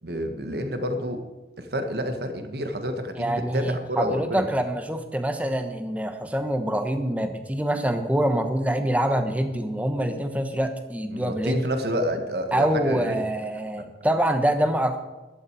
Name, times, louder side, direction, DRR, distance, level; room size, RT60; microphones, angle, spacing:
voice 1, 0.0-1.2 1.6-4.5 11.1-13.2, equal, 60° right, 6 dB, 1.6 m, -29 dB
voice 2, 3.2-11.6 12.5-15.0, right 1 dB, 10° right, 7 dB, 1.1 m, -25 dB
15.0 x 12.0 x 4.8 m, 1.1 s
head